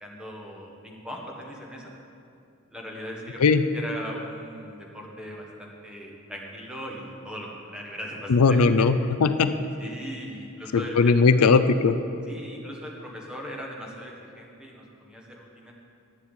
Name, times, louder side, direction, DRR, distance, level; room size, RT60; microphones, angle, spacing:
voice 1, 0.0-1.9 2.7-3.4 3.7-8.9 9.8-11.1 12.3-15.7, equal, 5° right, -2 dB, 1.6 m, -39 dB
voice 2, 8.3-9.0 9.2-9.5 10.7-12.0, left 4 dB, 80° left, 11 dB, 0.5 m, -18 dB
11.0 x 7.3 x 8.2 m, 2.6 s
head